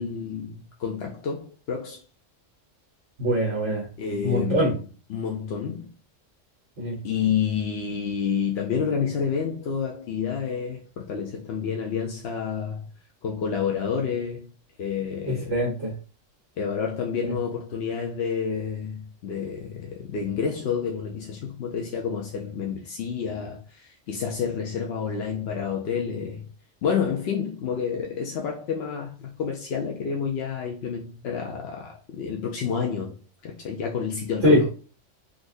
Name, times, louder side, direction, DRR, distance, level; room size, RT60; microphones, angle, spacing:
voice 1, 0.0-2.0 4.0-4.8 5.1-5.9 7.0-12.9 13.2-14.5 14.8-15.6 16.6-26.4 26.8-33.2 33.4-34.7, left 6 dB, 65° left, 0.7 m, -29 dB
voice 2, 3.2-3.8 4.2-4.7 6.8-7.0 15.3-15.9 17.2-17.3 34.4-34.6, equal, 65° right, 1.4 m, -22 dB
3.9 x 2.5 x 2.6 m
omnidirectional pair, 1.3 m